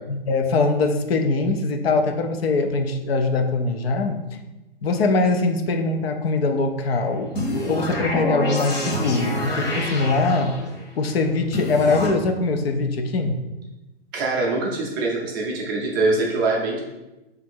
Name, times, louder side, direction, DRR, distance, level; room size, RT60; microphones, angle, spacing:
voice 1, 0.1-4.2 4.8-7.3 7.7-10.5 11.0-13.4, left 3 dB, 70° left, 6 dB, 0.6 m, -22 dB
sound 1, 7.3-10.8 11.5-12.1, left 1 dB, 40° left, 1.1 m, -27 dB
voice 2, 14.1-16.8, right 3 dB, 20° right, -2 dB, 0.4 m, -23 dB
3.7 x 2.6 x 4.3 m, 1.0 s
hypercardioid pair, 150°, 31 cm